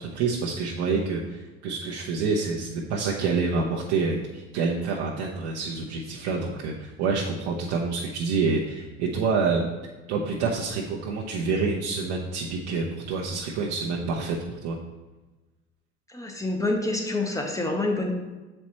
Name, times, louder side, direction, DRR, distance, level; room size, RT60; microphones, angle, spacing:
voice 1, 0.0-9.7 10.1-14.8, right 4 dB, 60° right, -3 dB, 0.9 m, -27 dB
voice 2, 16.1-18.1, left 2 dB, 10° left, 2 dB, 1.1 m, -27 dB
6.9 x 4.3 x 3.1 m, 1.2 s
hypercardioid pair, 70°, 35 cm